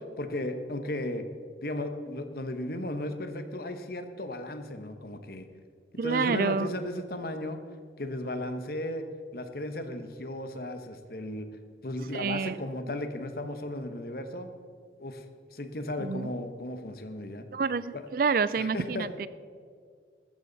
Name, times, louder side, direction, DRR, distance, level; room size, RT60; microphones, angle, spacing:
voice 1, 0.2-1.2 1.6-5.5 6.0-7.6 8.0-9.1 9.3-11.5 11.8-14.5 15.0-15.2 15.5-17.5 17.9-18.0 18.6-19.1, left 1 dB, 55° left, 8 dB, 1.2 m, -35 dB
voice 2, 6.0-6.7 12.1-12.5 16.0-16.3 17.5-19.3, right 5 dB, 50° right, 16 dB, 0.4 m, -28 dB
14.5 x 14.0 x 4.1 m, 2.1 s
head